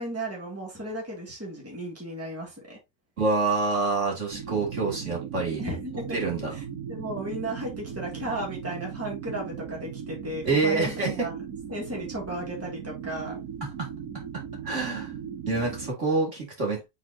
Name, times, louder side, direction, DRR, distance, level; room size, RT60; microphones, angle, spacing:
voice 1, 0.0-2.8 5.6-6.2 6.5-11.3 11.7-13.4, right 1 dB, 10° right, 2.4 m, -35 dB
voice 2, 3.2-5.6 6.1-6.5 10.4-11.2 14.6-15.1 15.5-16.9, right 3 dB, 50° right, 3.1 m, -26 dB
sound 1, 4.3-15.9, right 8 dB, 70° right, 1.3 m, -38 dB
8.2 x 4.2 x 2.8 m
omnidirectional pair, 1.6 m